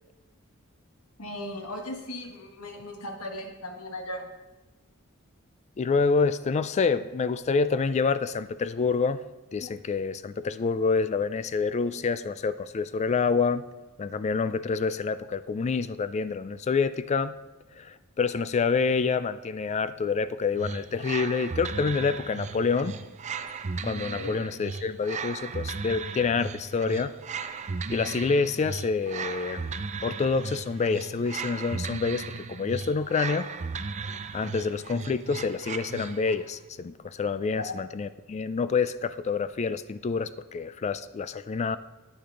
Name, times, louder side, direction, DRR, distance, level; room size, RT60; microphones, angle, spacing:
voice 1, 1.2-4.3 24.2-24.5 37.6-37.8, left 1 dB, 80° left, 3 dB, 1.4 m, -37 dB
voice 2, 5.8-9.2 9.5-13.7 14.0-17.3 17.8-22.9 23.8-27.1 27.9-29.7 30.0-33.5 34.3-41.8, left 5 dB, 30° left, 14 dB, 0.3 m, -27 dB
sound 1, 20.6-36.5, right 4 dB, 35° right, 0.4 m, -36 dB
10.0 x 9.4 x 3.8 m, 1.1 s
head